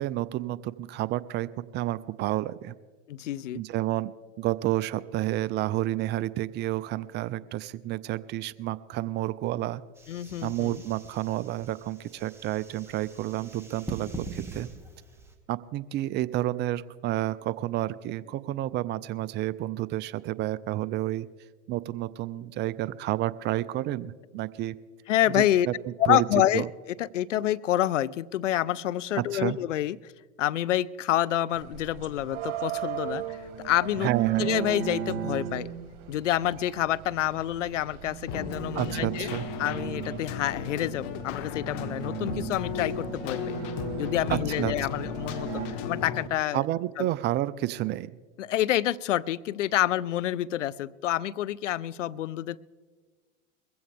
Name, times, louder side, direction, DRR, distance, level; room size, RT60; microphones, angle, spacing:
voice 1, 0.0-2.7 3.5-4.1 4.4-9.8 10.4-14.7 15.5-21.3 21.7-24.8 25.3-26.3 26.5-26.7 29.2-29.6 34.0-34.5 38.7-39.5 44.3-45.1 46.5-48.2, right 15 dB, 30° right, 18 dB, 0.4 m, -30 dB
voice 2, 3.1-3.6 10.1-10.8 25.1-25.7 26.0-26.6 27.0-30.0 30.4-34.1 34.4-35.7 36.1-39.3 39.6-43.6 44.0-45.5 45.8-46.6 47.0-47.1 48.4-52.6, left 13 dB, 90° left, 20 dB, 0.5 m, -28 dB
sound 1, 10.0-15.3, right 3 dB, 5° right, 1.9 m, -43 dB
sound 2, 31.5-45.7, right 11 dB, 55° right, 2.1 m, -36 dB
Keyboard (musical), 38.3-46.3, left 7 dB, 55° left, 1.3 m, -35 dB
21.5 x 15.5 x 3.4 m, 1.5 s
hypercardioid pair, 95°, 36 cm